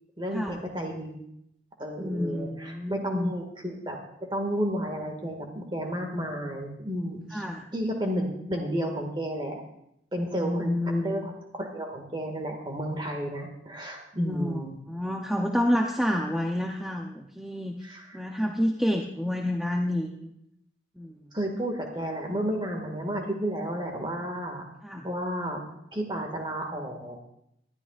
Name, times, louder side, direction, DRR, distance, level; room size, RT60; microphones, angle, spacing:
voice 1, 0.2-1.2 1.8-4.0 4.3-7.4 7.7-9.6 10.1-14.8 17.8-18.3 21.3-24.6 25.0-25.6 25.9-27.2, equal, 25° right, 2 dB, 1.9 m, -32 dB
voice 2, 2.0-3.3 7.3-7.6 10.3-11.3 14.2-14.6 14.9-17.9 18.1-20.3 21.0-21.3 24.8-25.1, left 1 dB, ahead, 1 dB, 0.6 m, -29 dB
19.5 x 12.5 x 2.5 m, 0.77 s
head